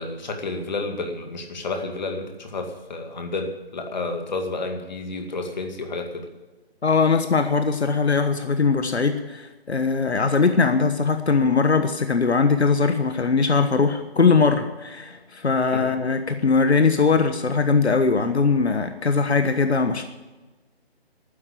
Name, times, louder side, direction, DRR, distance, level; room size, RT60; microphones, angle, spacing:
voice 1, 0.0-6.3 15.7-15.8, left 3 dB, 45° left, 4 dB, 2.2 m, -30 dB
voice 2, 6.8-20.0, left 4 dB, 85° left, 8 dB, 1.3 m, -20 dB
12.0 x 9.9 x 8.7 m, 1.2 s
figure-of-eight pair, 165°, 32 cm